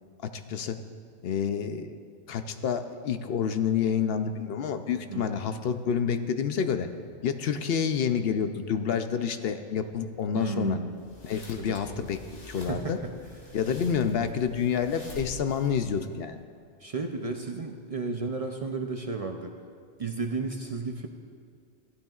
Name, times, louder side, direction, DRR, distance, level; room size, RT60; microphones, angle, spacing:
voice 1, 0.2-0.8 1.2-2.0 2.3-6.9 7.2-10.8 11.2-12.2 12.5-13.0 13.5-16.4, left 7 dB, 65° left, 8 dB, 0.8 m, -28 dB
voice 2, 10.4-10.9 11.6-11.8 12.6-13.1 16.8-19.5 20.0-21.1, right 4 dB, 45° right, 4 dB, 0.5 m, -33 dB
sound 1, 10.9-16.2, left 1 dB, 90° left, 2.0 m, -47 dB
16.0 x 12.0 x 2.4 m, 2.2 s
omnidirectional pair, 1.2 m